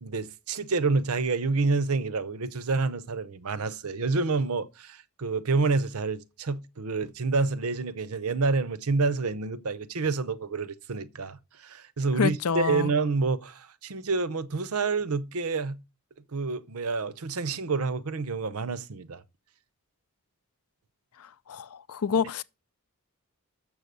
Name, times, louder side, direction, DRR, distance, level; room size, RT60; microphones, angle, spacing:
voice 1, 0.0-15.8 16.3-19.2, right 4 dB, 80° right, 0.7 m, -28 dB
voice 2, 12.2-12.9 21.5-22.4, left 6 dB, 80° left, 0.5 m, -27 dB
7.3 x 6.3 x 6.7 m
head